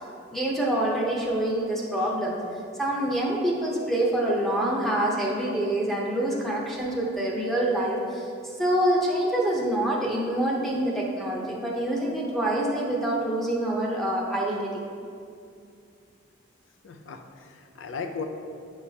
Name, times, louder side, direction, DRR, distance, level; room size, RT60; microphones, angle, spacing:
voice 1, 0.3-2.4 2.8-8.3 8.6-14.7, right 1 dB, ahead, -4 dB, 0.7 m, -26 dB
voice 2, 16.8-18.2, left 5 dB, 75° left, 6 dB, 0.5 m, -36 dB
9.0 x 4.8 x 2.8 m, 2.4 s
head